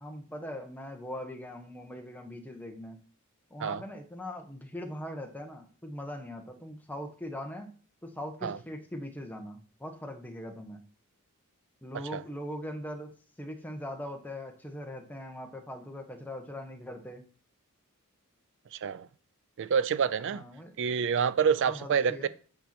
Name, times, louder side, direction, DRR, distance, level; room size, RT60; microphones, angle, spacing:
voice 1, 0.0-3.0 3.5-7.7 8.0-10.8 11.8-17.2 20.3-20.7 21.6-22.3, left 1 dB, 10° left, 1.1 m, -41 dB
voice 2, 18.7-19.1 19.6-20.4 20.8-22.3, right 6 dB, 55° right, 0.4 m, -27 dB
9.0 x 4.5 x 4.3 m
head